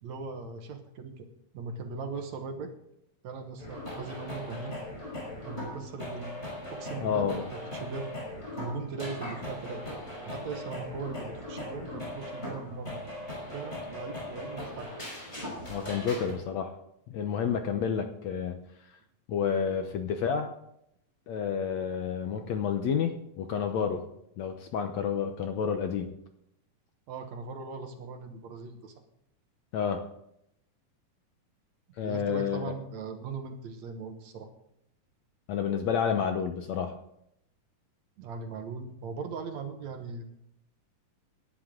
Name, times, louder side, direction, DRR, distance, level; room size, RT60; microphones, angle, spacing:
voice 1, 0.0-1.3 1.5-2.7 3.2-4.9 5.4-6.3 6.7-8.1 8.5-9.9 10.2-13.0 13.5-14.9 27.1-28.9 32.0-34.5 38.2-40.2, right 4 dB, 60° right, 5 dB, 2.2 m, -39 dB
sound 1, 3.6-16.3, left 1 dB, 15° left, 6.2 m, -39 dB
voice 2, 7.0-7.5 15.7-16.7 17.1-18.6 19.3-20.5 21.3-24.1 24.4-26.1 29.7-30.0 32.0-32.7 35.5-37.0, left 7 dB, 70° left, 6 dB, 1.8 m, -30 dB
18.0 x 11.5 x 3.8 m, 0.78 s
omnidirectional pair, 3.9 m